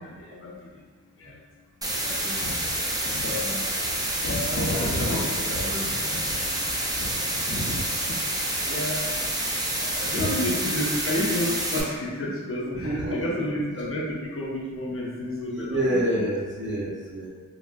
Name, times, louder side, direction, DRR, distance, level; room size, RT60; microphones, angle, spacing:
voice 1, 0.0-0.6 1.2-1.3 2.0-6.5 6.8-7.8 8.7-9.0 9.8-16.2, left 1 dB, 45° left, -4 dB, 0.6 m, -31 dB
sound 1, 1.8-11.8, right 1 dB, 10° right, 0.4 m, -28 dB
voice 2, 12.7-13.2 15.5-17.3, right 1 dB, 35° right, -6 dB, 0.8 m, -27 dB
3.4 x 2.0 x 2.5 m, 1.5 s
wide cardioid pair, 115°, 31 cm